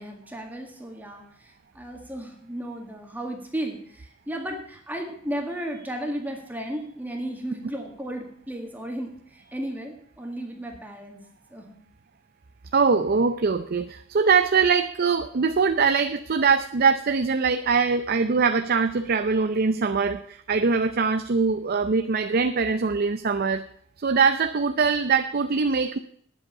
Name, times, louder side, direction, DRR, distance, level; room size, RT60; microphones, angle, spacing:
voice 1, 0.0-11.2 11.5-11.8, right 1 dB, 10° right, 2 dB, 1.8 m, -34 dB
voice 2, 12.7-23.6 24.0-26.0, right 5 dB, 50° right, 8 dB, 0.6 m, -22 dB
9.6 x 8.0 x 7.1 m, 0.63 s
head